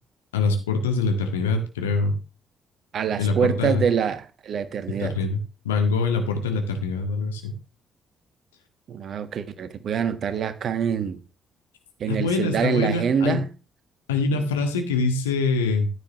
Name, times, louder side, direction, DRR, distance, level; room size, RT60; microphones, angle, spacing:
voice 1, 0.3-2.1 3.2-3.8 4.9-5.4 5.6-7.5 12.1-13.4 14.1-15.9, left 4 dB, 80° left, 1.8 m, -24 dB
voice 2, 2.9-5.2 8.9-11.2 12.0-13.5, right 7 dB, 55° right, 1.5 m, -25 dB
14.0 x 10.0 x 3.1 m
figure-of-eight pair, 45°, 0 cm